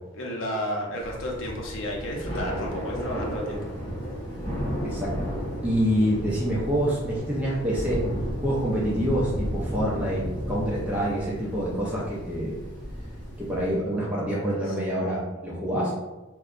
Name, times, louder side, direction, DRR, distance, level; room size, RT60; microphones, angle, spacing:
voice 1, 0.1-3.7, equal, 75° left, 0 dB, 0.6 m, -32 dB
Thunder / Rain, 1.0-13.9, equal, 25° left, 1.0 m, -33 dB
voice 2, 4.8-5.2 5.6-8.0 8.4-12.6 13.4-15.9, equal, 5° right, -7 dB, 0.4 m, -26 dB
2.7 x 2.1 x 2.4 m, 1.1 s
head